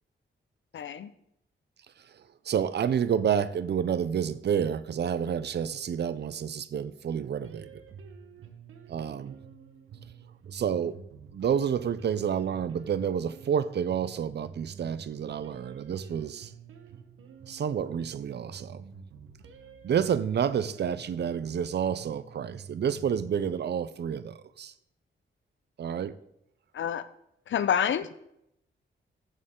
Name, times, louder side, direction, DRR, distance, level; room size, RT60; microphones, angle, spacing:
voice 1, 0.7-1.1 26.7-27.1 27.5-28.2, left 8 dB, 70° left, 0.6 m, -28 dB
voice 2, 2.0-7.8 8.9-9.4 10.5-11.0 11.3-16.5 17.5-18.8 19.8-24.7 25.8-26.1, right 8 dB, 55° right, 0.6 m, -29 dB
sound 1, 7.4-23.4, right 6 dB, 85° right, 1.2 m, -49 dB
16.0 x 6.5 x 3.8 m
wide cardioid pair, 145°, 20 cm